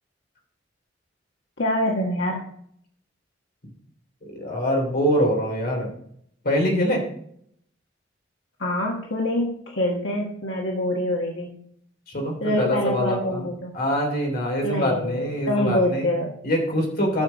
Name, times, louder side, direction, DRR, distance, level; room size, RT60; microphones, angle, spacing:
voice 1, 1.6-2.4 8.6-11.5 12.4-13.7 14.6-16.3, left 1 dB, 80° left, -1 dB, 1.4 m, -25 dB
voice 2, 4.4-5.9 6.4-7.0 12.1-16.1 16.4-17.2, equal, 55° left, 1 dB, 3.1 m, -24 dB
11.5 x 6.6 x 4.0 m, 0.68 s
head